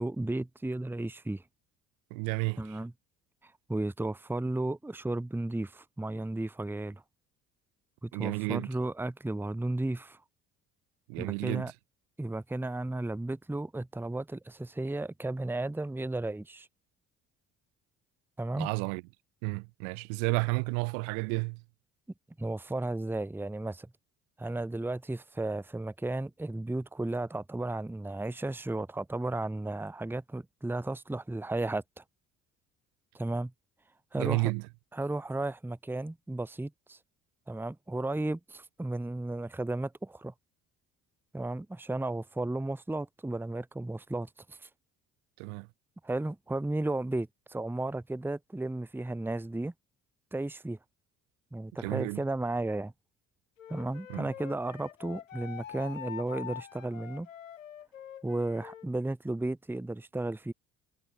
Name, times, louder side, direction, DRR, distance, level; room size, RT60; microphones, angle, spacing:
voice 1, 0.0-1.4 2.6-2.9 3.4-7.0 8.0-10.2 11.2-11.7 12.2-16.7 18.4-18.7 22.4-23.9 24.4-32.0 33.1-33.5 34.1-34.5 34.9-37.0 37.5-40.3 41.3-44.7 46.0-49.7 50.3-50.8 51.5-52.9 53.7-57.3 58.2-60.5, right 2 dB, 5° right, 1.0 m, -34 dB
voice 2, 2.1-2.8 8.1-8.7 11.1-11.7 18.6-19.0 19.4-21.6 34.2-34.7 45.4-45.7 51.8-52.2 54.1-54.3, right 40 dB or more, 75° right, 1.9 m, -31 dB
Wind instrument woodwind instrument, 53.6-58.9, left 9 dB, 90° left, 7.6 m, -45 dB
hypercardioid pair, 55°, 38 cm